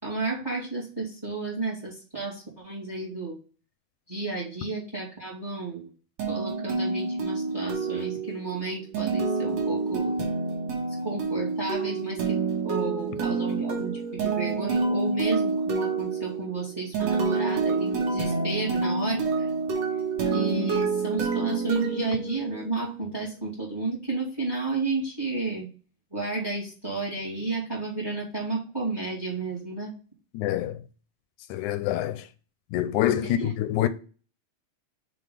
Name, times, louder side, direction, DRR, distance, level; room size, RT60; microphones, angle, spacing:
voice 1, 0.0-3.4 4.1-5.9 6.3-10.1 11.0-19.5 20.3-25.7 26.1-29.9 33.4-33.5, right 3 dB, 10° right, 1.8 m, -32 dB
sound 1, 6.2-22.9, right 4 dB, 60° right, 2.4 m, -28 dB
voice 2, 30.3-30.8 31.5-32.3 32.7-33.9, left 12 dB, 85° left, 2.0 m, -26 dB
6.7 x 3.8 x 5.0 m
omnidirectional pair, 3.5 m